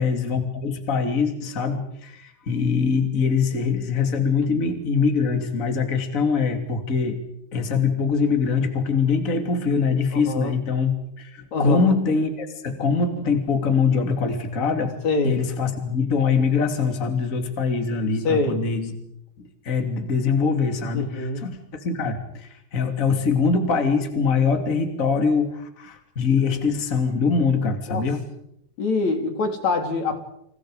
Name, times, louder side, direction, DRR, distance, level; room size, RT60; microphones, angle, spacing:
voice 1, 0.0-7.2 7.5-15.0 15.2-18.9 19.6-21.6 21.8-28.2, left 5 dB, 25° left, 6 dB, 2.7 m, -23 dB
voice 2, 10.1-10.5 11.5-12.0 15.0-15.4 18.2-18.6 20.9-21.5 27.9-28.0 28.8-30.2, left 3 dB, 50° left, 5 dB, 4.1 m, -24 dB
30.0 x 28.0 x 5.1 m, 0.78 s
omnidirectional pair, 4.5 m